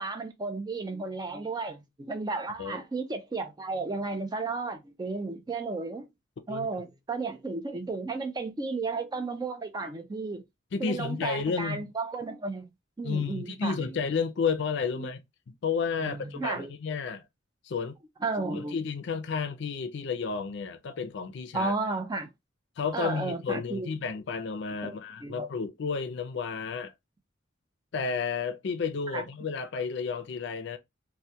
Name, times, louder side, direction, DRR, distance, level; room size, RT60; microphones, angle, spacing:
voice 1, 0.0-6.1 6.5-10.4 10.8-12.7 13.0-14.0 14.9-15.1 16.0-16.7 18.2-18.8 21.5-22.3 22.9-23.9 24.8-25.5 29.1-29.3, right 3 dB, 20° right, 0.4 m, -33 dB
voice 2, 10.7-11.9 13.0-15.2 15.6-17.2 17.6-17.9 18.5-21.7 22.8-26.9 27.9-30.8, left 5 dB, 65° left, 0.4 m, -31 dB
2.2 x 2.1 x 2.7 m
head